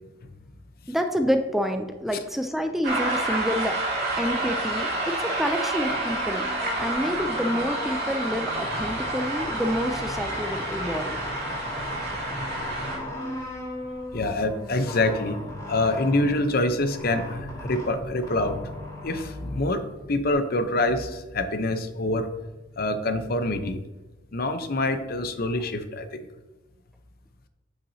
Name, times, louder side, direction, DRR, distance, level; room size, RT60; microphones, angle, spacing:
voice 1, 0.9-3.8 4.2-6.5 6.8-11.2, equal, ahead, 5 dB, 0.4 m, -28 dB
sound 1, 2.8-13.0, right 2 dB, 55° right, 2.9 m, -29 dB
sound 2, 5.7-20.3, left 1 dB, 20° left, 3.0 m, -37 dB
voice 2, 14.1-15.4 15.7-18.6 19.0-19.8 20.1-22.3 22.8-23.8 24.3-26.2, left 2 dB, 50° left, 9 dB, 0.7 m, -25 dB
8.5 x 8.2 x 2.7 m, 1.1 s
head